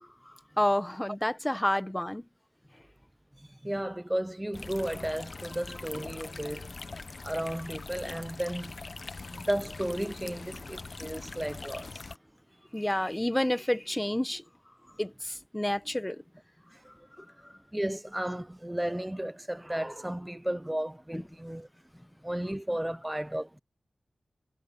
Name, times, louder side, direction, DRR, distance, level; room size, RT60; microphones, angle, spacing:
voice 1, 0.3-2.2 12.7-14.4 15.0-16.2 17.2-17.3 21.1-21.2, left 1 dB, 15° left, 1.2 m, -29 dB
voice 2, 3.4-6.7 7.2-8.8 9.3-12.1 16.7-16.9 17.4-21.7 22.2-23.6, right 1 dB, 10° right, 0.6 m, -34 dB
sound 1, 4.5-12.2, left 3 dB, 55° left, 0.9 m, -42 dB
cardioid pair, 50°, 0 cm